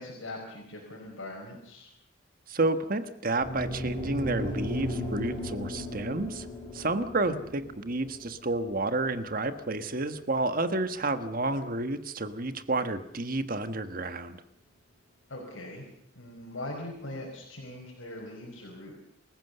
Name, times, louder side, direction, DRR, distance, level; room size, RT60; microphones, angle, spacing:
voice 1, 0.0-1.9 7.3-7.4 11.4-11.6 15.3-15.9 16.2-19.0, left 1 dB, 85° left, -1 dB, 5.4 m, -41 dB
voice 2, 2.5-6.5 6.7-14.4, right 2 dB, 45° right, 10 dB, 1.4 m, -30 dB
sound 1, 3.4-11.6, equal, 25° left, 6.5 m, -37 dB
28.0 x 15.5 x 6.8 m, 0.75 s
head